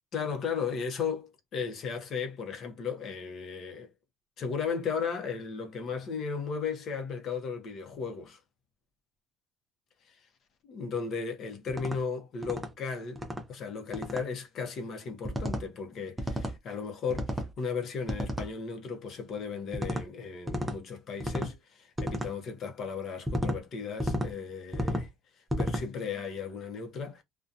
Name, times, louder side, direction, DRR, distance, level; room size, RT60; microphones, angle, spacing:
voice 1, 0.1-3.9 4.4-8.4 10.0-10.2 10.7-25.1 25.6-27.2, left 5 dB, 40° left, 0.7 m, -35 dB
sound 1, 11.7-12.0 12.4-12.7 13.2-13.4 13.9-14.2 15.2-15.6 16.2-16.6 17.1-17.5 18.1-18.5 19.7-20.0 20.5-20.8 21.2-21.5 22.0-22.3 23.3-23.6 24.0-24.3 24.7-25.1 25.5-25.8, equal, 10° right, 0.5 m, -32 dB
2.6 x 2.2 x 2.4 m
cardioid pair, 155°, 0 cm